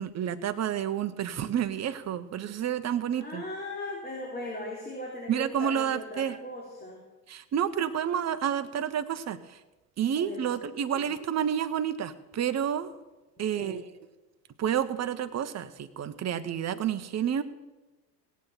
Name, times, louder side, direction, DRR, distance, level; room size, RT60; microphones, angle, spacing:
voice 1, 0.0-3.4 5.3-6.4 7.3-9.4 10.0-12.9 13.4-13.8 14.6-17.4, right 9 dB, 30° right, 10 dB, 1.1 m, -29 dB
voice 2, 3.1-7.0 10.1-10.6 10.9-11.1 13.4-13.8, left 1 dB, 20° left, -2 dB, 3.5 m, -39 dB
17.5 x 8.5 x 5.8 m, 1.1 s
hypercardioid pair, 75°, 50 cm